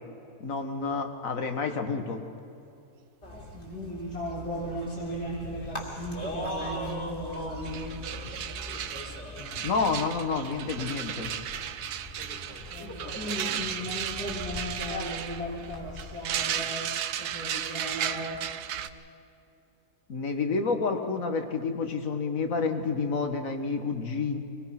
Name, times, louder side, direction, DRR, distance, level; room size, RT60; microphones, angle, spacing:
voice 1, 0.4-2.2 9.6-11.3 20.1-24.4, left 4 dB, 60° left, 6 dB, 1.9 m, -29 dB
sound 1, 3.2-16.5, left 1 dB, 45° left, 3.2 m, -40 dB
voice 2, 3.3-7.9 12.5-18.4, equal, 75° left, -6 dB, 3.9 m, -37 dB
sound 2, 7.3-7.4 7.6-18.9, right 10 dB, 85° right, 1.3 m, -35 dB
24.5 x 19.5 x 6.0 m, 2.7 s
omnidirectional pair, 1.6 m